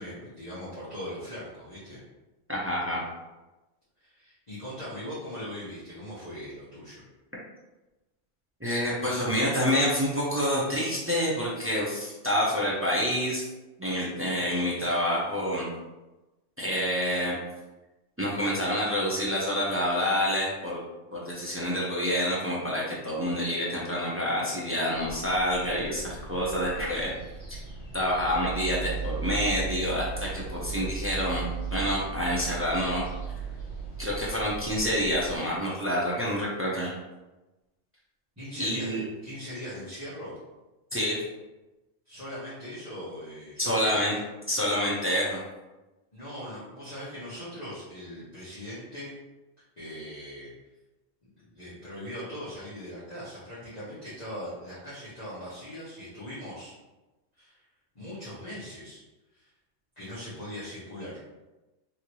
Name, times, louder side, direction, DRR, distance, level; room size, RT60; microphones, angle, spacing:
voice 1, 0.0-2.0 4.0-7.0 38.4-40.3 42.0-44.0 46.1-49.1 49.8-50.5 51.2-56.7 57.4-57.6 57.9-59.0 59.3-59.5 60.0-61.2, equal, 35° left, -12 dB, 1.1 m, -40 dB
voice 2, 2.5-3.0 8.6-13.4 13.8-15.7 16.6-17.3 18.2-20.8 21.1-27.1 27.9-33.1 34.0-36.9 38.6-39.1 40.9-41.2 43.6-44.1 44.5-45.4, equal, 20° right, -6 dB, 0.4 m, -27 dB
sound 1, 24.9-35.3, right 4 dB, 55° left, 1.6 m, -37 dB
3.1 x 2.7 x 2.9 m, 1.1 s
omnidirectional pair, 1.3 m